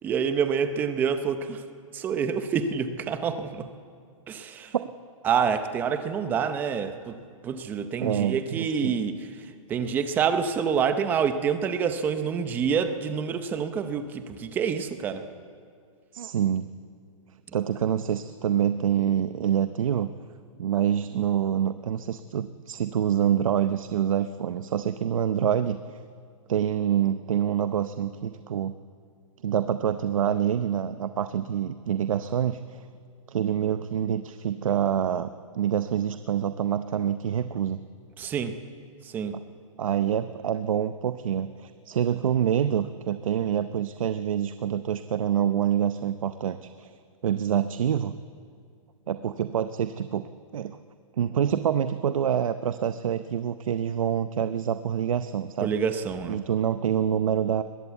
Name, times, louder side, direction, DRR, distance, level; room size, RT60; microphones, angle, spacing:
voice 1, 0.0-1.6 1.9-3.7 4.3-4.7 5.2-7.2 7.4-9.2 9.7-15.2 38.2-38.6 39.1-39.4 55.6-56.4, right 6 dB, 10° right, 10 dB, 0.7 m, -27 dB
voice 2, 8.0-8.9 16.1-16.7 17.5-20.1 20.6-25.8 26.5-28.7 29.4-32.8 33.3-37.8 39.8-46.9 47.2-48.1 49.1-50.3 50.5-50.8 51.2-55.7 56.3-57.6, right 9 dB, 70° right, 11 dB, 0.7 m, -26 dB
21.0 x 15.0 x 8.2 m, 2.2 s
hypercardioid pair, 170°, 18 cm